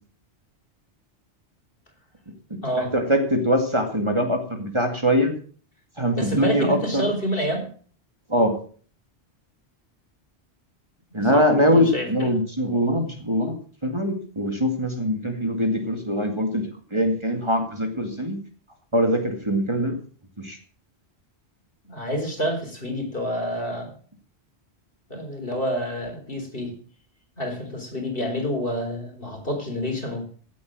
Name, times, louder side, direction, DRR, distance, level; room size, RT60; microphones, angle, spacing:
voice 1, 2.8-5.3 6.0-7.0 8.3-8.5 11.1-13.5 13.8-18.4 18.9-20.0 20.4-20.6, equal, 25° right, 4 dB, 2.3 m, -22 dB
voice 2, 6.1-7.7 11.1-12.3 21.8-23.9 25.1-26.7 27.4-30.2, equal, 55° left, 4 dB, 4.3 m, -28 dB
17.0 x 8.5 x 6.4 m, 0.43 s
omnidirectional pair, 1.2 m